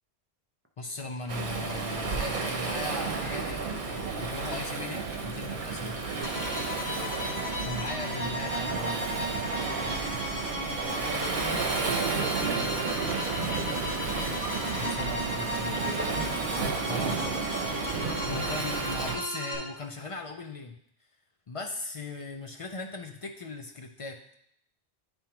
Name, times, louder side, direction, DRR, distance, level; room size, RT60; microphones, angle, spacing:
voice 1, 0.8-6.0 7.6-9.4 14.8-16.1 16.9-17.2 18.2-20.8 21.5-24.2, left 3 dB, 45° left, 2 dB, 0.4 m, -38 dB
Waves surf, 1.3-19.2, right 4 dB, 50° right, 0.9 m, -32 dB
sound 1, 6.2-19.6, equal, 25° left, 1.7 m, -35 dB
voice 2, 6.8-7.3 10.9-13.8 15.6-16.2 16.9-17.7, left 1 dB, 15° right, 0 dB, 0.7 m, -44 dB
10.5 x 3.5 x 2.9 m, 0.71 s
omnidirectional pair, 1.1 m